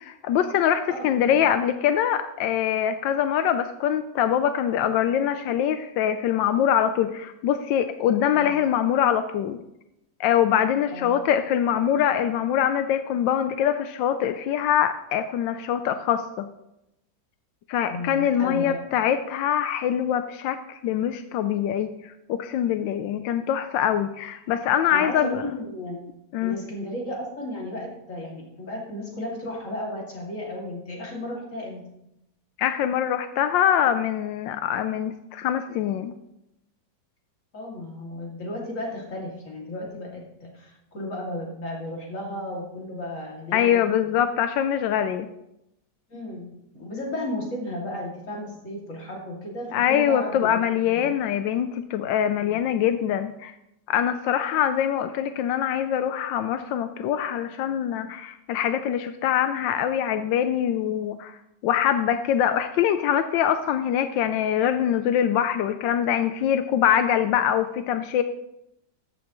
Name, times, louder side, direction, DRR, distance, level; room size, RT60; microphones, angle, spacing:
voice 1, 0.0-9.6 10.2-16.5 17.7-25.4 26.3-26.6 32.6-36.1 43.5-45.3 49.7-53.5 53.9-61.4 61.6-68.2, left 9 dB, 90° left, 10 dB, 1.3 m, -24 dB
voice 2, 0.9-1.4 8.3-8.5 10.9-11.2 17.9-18.8 24.9-26.1 26.4-31.9 37.5-44.1 46.1-51.1 52.4-52.6, left 1 dB, 45° left, -2 dB, 2.8 m, -34 dB
13.5 x 8.6 x 3.0 m, 0.83 s
omnidirectional pair, 1.9 m